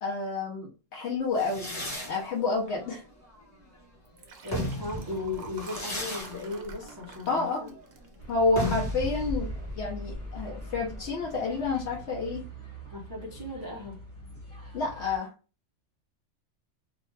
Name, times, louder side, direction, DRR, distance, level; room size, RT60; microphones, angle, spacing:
voice 1, 0.0-1.7 2.1-3.0 7.3-7.7 8.3-9.5 9.8-12.5 14.7-15.3, left 3 dB, 65° left, -1 dB, 0.9 m, -29 dB
sound 1, 1.4-3.8 4.3-11.8, equal, 15° left, 0.8 m, -37 dB
Liquid, 4.1-8.7 9.2-9.5 9.7-9.8, right 4 dB, 60° right, 0.8 m, -47 dB
voice 2, 4.4-7.7 12.9-14.0, left 3 dB, 35° right, -4 dB, 0.4 m, -37 dB
sound 2, 8.2-15.2, left 1 dB, 10° right, 1.1 m, -41 dB
2.7 x 2.1 x 3.1 m, 0.34 s
omnidirectional pair, 1.3 m